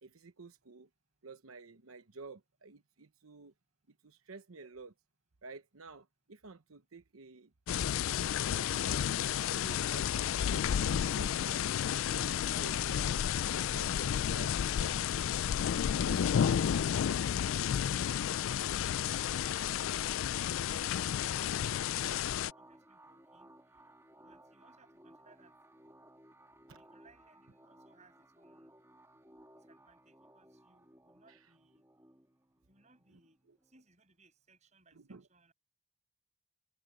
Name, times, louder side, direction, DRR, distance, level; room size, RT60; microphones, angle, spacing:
voice 1, 0.0-0.9 1.2-3.5 3.9-4.9 5.4-9.2 9.5-13.2 13.7-15.1 15.5-16.7 26.7-26.8 31.3-31.5 34.9-35.3, right 3 dB, 85° right, 1.0 m, -52 dB
sound 1, 7.7-22.5, left 9 dB, 75° left, 0.3 m, -31 dB
voice 2, 18.1-22.2 22.6-23.5 24.2-25.5 26.7-28.7 29.7-31.8 32.7-33.4 33.7-35.5, right 3 dB, 35° right, 7.0 m, -67 dB
sound 2, 20.7-33.9, right 1 dB, 15° right, 1.5 m, -60 dB
head